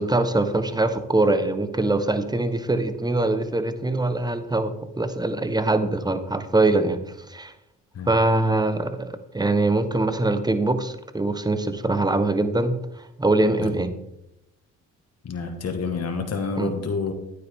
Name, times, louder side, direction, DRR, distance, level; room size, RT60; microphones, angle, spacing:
voice 1, 0.0-7.0 7.3-7.5 8.1-12.8 13.2-13.9 16.6-16.7, right 2 dB, 10° right, 10 dB, 1.2 m, -23 dB
voice 2, 15.2-17.1, left 4 dB, 45° left, 4 dB, 1.8 m, -28 dB
10.0 x 9.3 x 3.7 m, 0.86 s
supercardioid pair, 60°, 35 cm